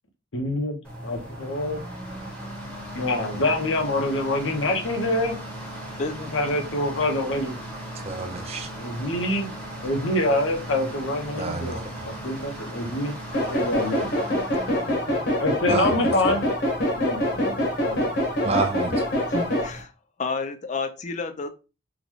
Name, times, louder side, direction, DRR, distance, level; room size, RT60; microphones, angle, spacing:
voice 1, 0.3-1.8 2.9-5.4 6.3-7.6 8.8-9.5 9.8-13.2 13.5-14.2 15.4-16.4 17.0-18.1, left 1 dB, 85° left, 0.8 m, -26 dB
sound 1, 0.8-19.8, right 1 dB, 5° left, 0.8 m, -38 dB
voice 2, 6.0-6.6 19.3-19.9 20.2-21.5, left 4 dB, 40° left, 0.4 m, -31 dB
voice 3, 7.9-8.7 11.4-11.9 15.7-16.3 18.4-19.0, right 3 dB, 30° right, 0.5 m, -29 dB
sound 2, 13.3-19.7, left 1 dB, 55° left, 1.0 m, -25 dB
3.9 x 2.2 x 2.9 m
head